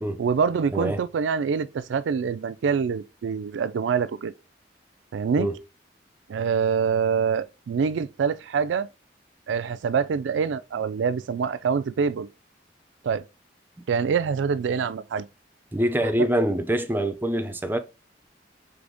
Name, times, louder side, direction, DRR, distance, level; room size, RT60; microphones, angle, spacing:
voice 1, 0.2-4.3 5.1-5.5 6.3-8.9 9.5-12.3 13.0-13.2 13.9-15.3 16.0-16.1, right 6 dB, 80° right, 0.4 m, -25 dB
voice 2, 0.7-1.0 5.4-5.6 15.7-17.8, right 1 dB, 10° right, 0.4 m, -25 dB
3.9 x 3.4 x 3.4 m
head